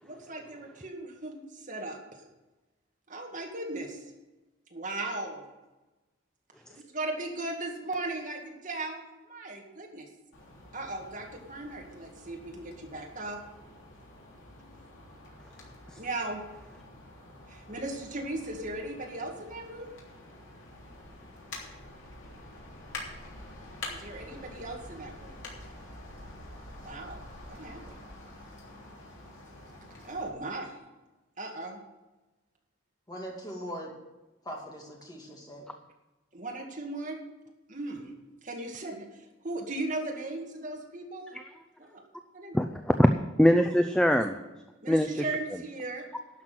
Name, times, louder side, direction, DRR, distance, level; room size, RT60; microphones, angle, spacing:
voice 1, 0.0-2.2 3.1-4.1 4.7-5.5 6.7-10.1 10.7-13.4 16.0-16.4 17.5-19.9 23.9-25.4 26.8-27.2 27.5-27.8 30.0-30.8 31.4-31.8 36.3-37.2 37.7-38.1 38.4-41.4 41.8-42.0 42.3-42.6 44.2-44.3 44.8-46.1, right 2 dB, 40° right, 1 dB, 2.0 m, -37 dB
sound 1, 10.3-30.3, left 2 dB, 70° left, 3.3 m, -47 dB
voice 2, 33.1-33.9 34.4-35.7, equal, 20° left, -1 dB, 2.3 m, -41 dB
voice 3, 42.5-43.1 43.4-44.3 44.9-45.3, equal, 5° left, 6 dB, 0.5 m, -22 dB
12.0 x 6.0 x 9.2 m, 1.1 s
head